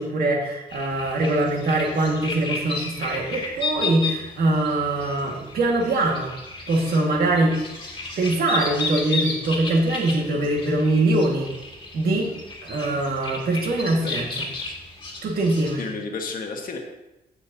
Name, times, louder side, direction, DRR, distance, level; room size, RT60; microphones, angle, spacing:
voice 1, 0.0-6.3 6.7-7.6 8.2-11.5 11.9-12.3 12.6-14.3 15.2-15.8, right 2 dB, 70° right, 0 dB, 1.9 m, -23 dB
sound 1, 0.7-15.9, left 3 dB, 30° left, 1.8 m, -33 dB
voice 2, 13.8-14.3 14.6-14.8 15.8-16.8, left 4 dB, 60° left, 2 dB, 1.4 m, -33 dB
15.0 x 6.2 x 2.8 m, 0.97 s
wide cardioid pair, 150°, 16 cm